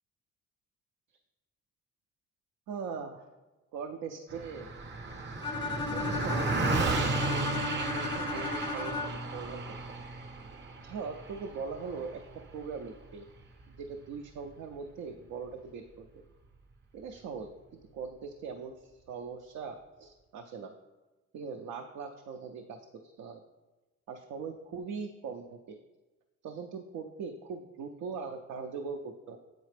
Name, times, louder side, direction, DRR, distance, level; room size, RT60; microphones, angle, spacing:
voice 1, 2.7-3.3 3.7-4.7 5.9-9.6 9.9-10.1 10.8-12.2 12.5-13.3 13.7-16.2 16.9-17.5 17.9-18.8 19.1-20.7 21.3-23.4 24.1-25.8 26.4-29.4, right 5 dB, 80° right, 3 dB, 0.5 m, -41 dB
Car passing by, 4.3-13.9, right 3 dB, 35° right, 0.7 m, -34 dB
Bowed string instrument, 5.4-9.4, left 4 dB, 15° left, 0.4 m, -35 dB
8.0 x 4.1 x 3.3 m, 1.1 s
cardioid pair, 90°, 30 cm